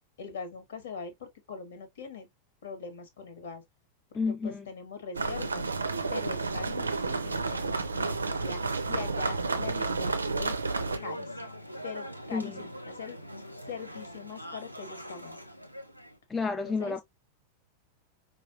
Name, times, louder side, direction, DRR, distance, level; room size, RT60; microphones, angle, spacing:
voice 1, 0.2-2.3 2.6-3.6 4.3-5.7 6.1-10.6 11.0-11.5 11.8-13.2 13.7-15.4 16.6-17.0, left 5 dB, 60° left, 1.2 m, -42 dB
voice 2, 4.1-4.6 12.3-12.6 16.3-17.0, left 4 dB, 15° left, 0.4 m, -30 dB
sound 1, 5.1-11.0, right 3 dB, 75° right, 0.4 m, -31 dB
sound 2, 10.8-16.2, equal, 90° left, 0.6 m, -42 dB
4.8 x 2.3 x 2.6 m
figure-of-eight pair, 90°, 0 cm